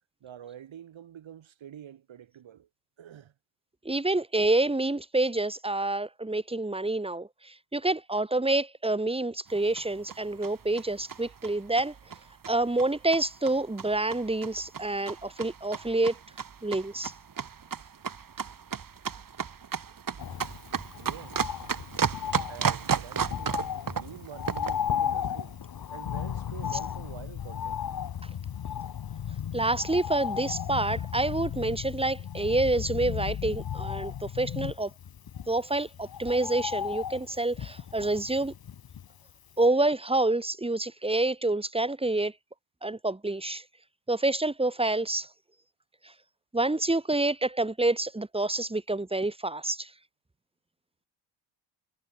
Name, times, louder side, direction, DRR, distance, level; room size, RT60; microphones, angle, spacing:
voice 1, 0.2-2.7 3.0-3.3 20.2-20.6 20.9-21.6 22.5-25.6 25.9-27.9, right 10 dB, 70° right, 6.5 m, -47 dB
voice 2, 3.8-11.9 12.5-16.1 16.6-17.1 28.2-28.3 29.5-34.9 35.5-38.5 39.6-42.3 42.8-43.6 44.1-45.3 46.5-49.9, right 2 dB, 10° right, 2.3 m, -27 dB
sound 1, 9.5-24.9, right 7 dB, 45° right, 3.0 m, -34 dB
Bird, 20.2-39.3 39.6-39.7, left 8 dB, 50° left, 1.6 m, -37 dB
sound 2, 26.0-34.7, left 9 dB, 65° left, 5.7 m, -36 dB
cardioid pair, 110°, 48 cm